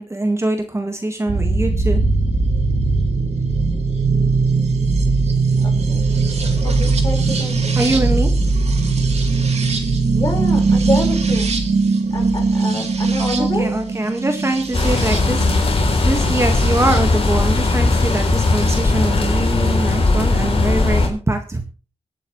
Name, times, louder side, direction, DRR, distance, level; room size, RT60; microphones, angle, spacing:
voice 1, 0.0-2.0 7.8-8.3 13.2-15.4 16.0-21.6, right 1 dB, 25° right, 5 dB, 1.7 m, -23 dB
sound 1, 1.3-17.0 18.2-18.8, right 3 dB, 65° right, 2.3 m, -19 dB
voice 2, 5.6-6.0 6.6-7.8 10.1-11.5 12.1-13.7, left 1 dB, 35° left, 1 dB, 5.0 m, -27 dB
sound 2, 14.7-21.1, left 2 dB, 55° left, 3.5 m, -18 dB
23.5 x 8.4 x 3.2 m, 0.34 s
wide cardioid pair, 80°, 12 cm